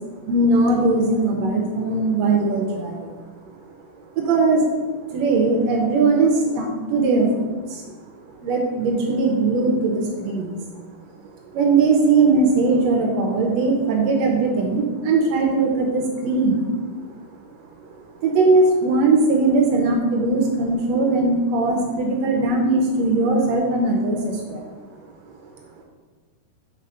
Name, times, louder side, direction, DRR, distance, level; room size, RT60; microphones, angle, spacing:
voice 1, 0.3-3.1 4.2-4.7 5.1-7.8 8.4-10.6 11.5-16.7 17.8-17.9 18.2-24.6, right 3 dB, 90° right, 1 dB, 1.4 m, -20 dB
6.3 x 4.1 x 5.6 m, 1.4 s
omnidirectional pair, 3.9 m